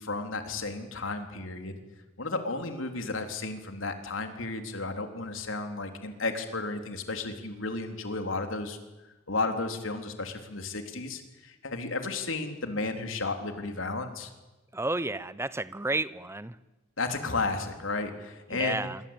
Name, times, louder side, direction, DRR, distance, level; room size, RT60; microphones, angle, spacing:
voice 1, 0.0-1.8 2.2-8.8 9.3-14.3 17.0-18.9, left 3 dB, 90° left, 6 dB, 3.7 m, -33 dB
voice 2, 14.7-16.5 18.5-19.0, right 2 dB, 15° right, 16 dB, 0.9 m, -31 dB
26.5 x 24.5 x 9.1 m, 1.1 s
head